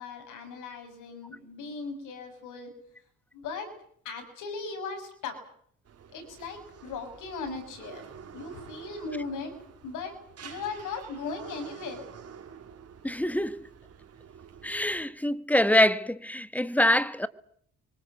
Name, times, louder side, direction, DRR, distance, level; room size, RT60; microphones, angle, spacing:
voice 1, 0.0-2.7 3.3-3.7 4.0-5.4 6.1-8.0 8.3-9.6 9.8-12.1, left 4 dB, 85° left, 7.4 m, -38 dB
sound 1, 5.9-15.1, right 7 dB, 55° right, 3.9 m, -48 dB
voice 2, 13.0-13.5 14.6-17.3, left 1 dB, 5° left, 1.5 m, -24 dB
24.5 x 22.5 x 8.3 m
cardioid pair, 90°, 30 cm